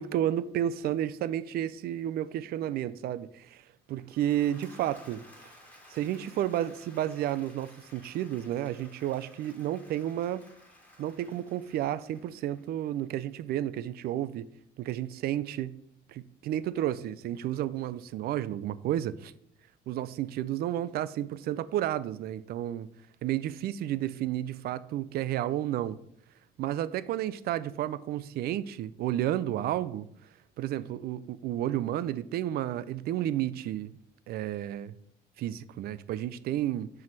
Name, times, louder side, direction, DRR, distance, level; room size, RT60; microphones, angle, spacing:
voice 1, 0.0-3.6 3.9-5.2 5.9-10.4 11.0-14.5 14.8-15.7 16.1-19.3 19.9-22.9 23.2-26.0 26.6-30.1 30.6-33.9 34.3-35.0 35.4-36.9, right 12 dB, 65° right, 0.5 m, -31 dB
Applause / Crowd, 3.9-13.1, left 1 dB, 10° left, 2.9 m, -56 dB
6.0 x 4.8 x 5.9 m
cardioid pair, 110°, 17 cm